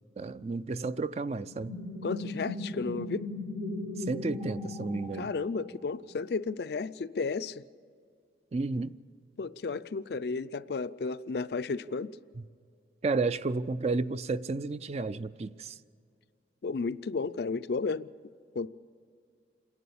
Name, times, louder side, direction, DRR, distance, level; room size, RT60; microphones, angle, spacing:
voice 1, 0.2-1.7 4.1-5.3 8.5-8.9 13.0-15.7, right 3 dB, 35° right, 0.4 m, -32 dB
sound 1, 1.5-5.9, left 2 dB, 85° right, 4.8 m, -38 dB
voice 2, 2.0-3.3 5.1-7.7 9.4-12.2 16.6-18.1 18.5-18.7, left 4 dB, 60° left, 0.4 m, -33 dB
27.5 x 11.0 x 8.5 m
head